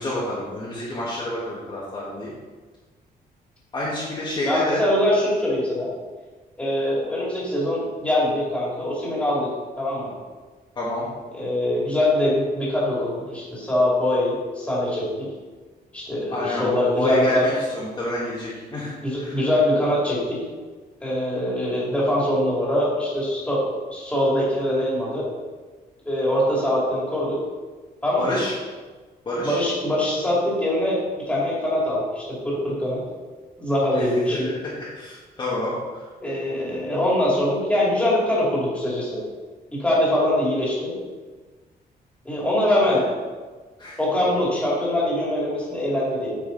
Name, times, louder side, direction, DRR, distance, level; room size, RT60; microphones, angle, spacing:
voice 1, 0.0-2.3 3.7-4.8 10.7-11.1 16.3-19.4 28.2-28.5 29.2-29.6 33.9-36.0 42.8-43.0 43.8-44.0, left 1 dB, 30° left, -8 dB, 1.7 m, -29 dB
voice 2, 4.5-5.9 6.6-9.5 9.8-10.1 11.3-15.3 15.9-17.4 19.0-20.4 21.0-23.6 23.9-25.3 26.0-27.4 28.0-28.4 29.4-33.0 33.6-34.5 36.2-39.2 39.7-40.9 42.2-43.0 44.0-46.4, left 1 dB, 5° left, -7 dB, 2.7 m, -23 dB
9.6 x 5.7 x 4.0 m, 1.4 s
cardioid pair, 175°, 16 cm